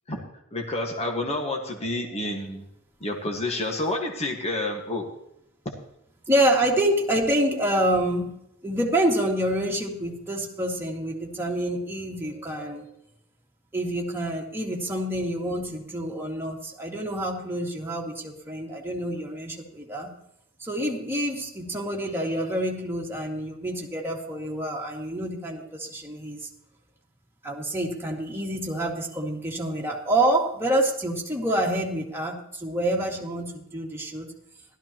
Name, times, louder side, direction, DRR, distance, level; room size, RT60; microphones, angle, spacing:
voice 1, 0.5-2.7 3.0-5.1, left 2 dB, 30° left, 2 dB, 1.6 m, -29 dB
voice 2, 6.3-12.9 13.7-20.1 20.6-26.5 27.4-34.3, right 1 dB, 10° right, -3 dB, 2.2 m, -27 dB
16.0 x 13.0 x 3.0 m, 0.78 s
head